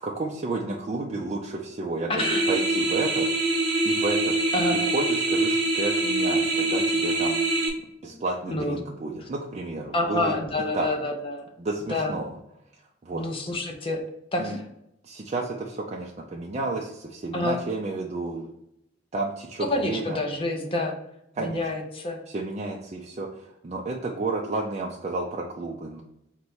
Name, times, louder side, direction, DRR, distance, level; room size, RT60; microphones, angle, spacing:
voice 1, 0.0-7.4 8.0-10.3 10.7-10.9 11.6-12.4 13.0-13.2 14.4-14.6 15.0-18.5 19.1-20.2 21.4-21.6 22.3-26.0, right 3 dB, 35° right, -2 dB, 0.4 m, -31 dB
voice 2, 2.1-2.4 4.5-4.8 8.0-8.2 8.5-8.8 9.9-11.5 11.9-12.1 13.1-14.0 14.3-14.6 17.3-17.6 19.7-21.0 21.4-22.2, left 2 dB, 30° left, 3 dB, 0.6 m, -28 dB
sound 1, 2.2-7.7, right 2 dB, 65° right, 0.8 m, -24 dB
4.0 x 2.2 x 4.6 m, 0.81 s
head